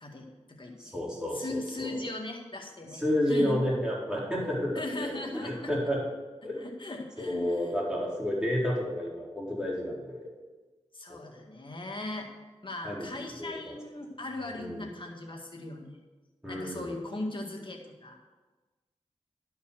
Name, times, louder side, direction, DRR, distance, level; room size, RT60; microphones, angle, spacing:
voice 1, 0.0-0.9 1.3-3.0 3.3-3.6 4.8-5.7 6.5-7.7 10.9-12.3 12.6-16.0 16.5-18.3, left 2 dB, 45° left, 1 dB, 2.0 m, -38 dB
voice 2, 0.8-2.0 2.9-4.7 5.0-6.0 6.4-6.6 7.2-10.3 11.1-11.2 12.8-13.1 13.4-13.7 14.5-14.8 16.4-16.9, equal, 5° right, -6 dB, 4.1 m, -31 dB
11.5 x 5.7 x 6.3 m, 1.2 s
cardioid pair, 45°, 12 cm